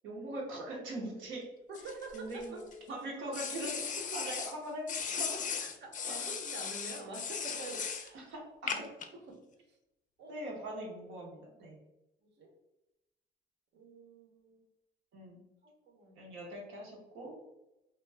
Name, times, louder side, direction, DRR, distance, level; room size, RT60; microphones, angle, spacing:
voice 1, 0.0-1.4 2.1-2.6 2.9-5.3 6.0-6.3 8.1-8.8 10.3-11.8 15.1-15.4 16.2-17.3, right 1 dB, 90° right, -1 dB, 0.9 m, -41 dB
sound 1, 1.7-2.7 3.3-4.5 4.9-8.1 8.7-9.1, left 6 dB, 40° left, 0.4 m, -37 dB
voice 2, 1.7-2.7 3.6-4.3 5.1-5.3 5.6-8.3 8.7-8.9 9.1-9.8 10.2-10.4 12.2-12.5 13.7-14.7 15.6-16.3, right 2 dB, 60° right, 2 dB, 0.8 m, -47 dB
2.6 x 2.3 x 3.2 m, 0.93 s
cardioid pair, 90°, 20 cm